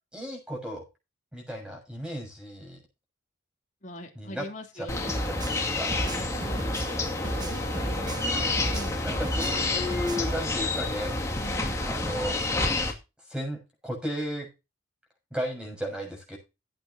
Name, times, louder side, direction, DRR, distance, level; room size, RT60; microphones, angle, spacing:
voice 1, 0.1-0.8 1.3-2.8 4.2-4.5 4.8-5.9 8.1-8.6 9.0-11.1 11.8-12.4 13.3-14.5 15.3-16.4, equal, 5° right, 1 dB, 7.0 m, -34 dB
voice 2, 3.8-5.4 6.0-9.1 11.4-11.8, left 1 dB, 35° left, 1 dB, 3.1 m, -43 dB
sound 1, 4.9-12.9, left 2 dB, 15° left, 2.2 m, -29 dB
sound 2, 5.1-8.3 8.6-10.4, right 1 dB, 20° right, 1.3 m, -35 dB
Wind, 5.5-9.9 10.1-10.2, right 2 dB, 60° right, 3.2 m, -46 dB
17.0 x 9.1 x 2.8 m, 0.27 s
head